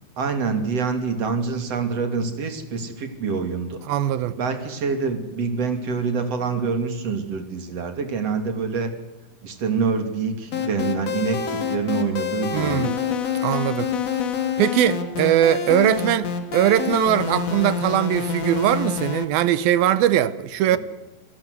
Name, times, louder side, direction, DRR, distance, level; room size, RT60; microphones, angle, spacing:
voice 1, 0.2-3.8 4.4-8.9 9.4-12.9 20.7-20.8, right 5 dB, 40° right, 3.3 m, -26 dB
voice 2, 3.9-4.4 12.5-13.0 13.4-13.9 14.6-20.8, right 11 dB, 75° right, 2.4 m, -21 dB
sound 1, 10.5-19.2, left 6 dB, 45° left, 2.8 m, -27 dB
28.0 x 18.0 x 8.2 m
omnidirectional pair, 5.1 m